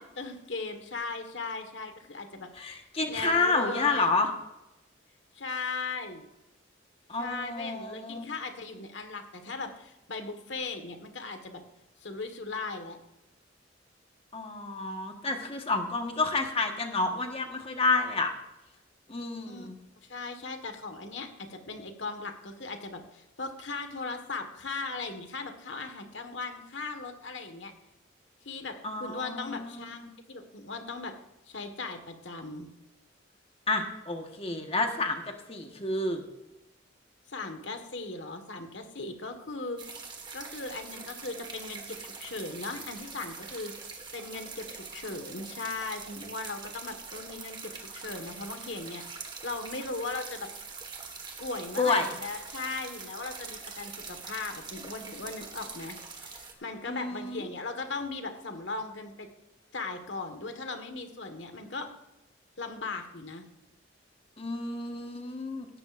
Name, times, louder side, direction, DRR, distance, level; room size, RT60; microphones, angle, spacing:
voice 1, 0.2-2.5 3.1-4.1 5.3-6.3 7.2-11.6 12.0-13.0 19.5-19.7 20.1-27.7 28.4-30.0 30.3-31.1 31.5-32.7 37.3-39.8 40.3-43.7 44.1-50.5 51.4-59.3 59.7-61.9 62.6-63.4, left 3 dB, 70° left, 6 dB, 1.6 m, -38 dB
voice 2, 2.6-4.3 7.1-8.3 14.3-18.3 19.1-19.7 28.8-30.1 33.7-35.2 35.5-36.2 51.8-52.1 56.8-57.4 64.4-65.7, left 3 dB, 30° left, 4 dB, 1.4 m, -29 dB
sound 1, 39.8-56.5, right 5 dB, 25° right, 1.6 m, -43 dB
17.5 x 13.0 x 2.6 m, 0.95 s
head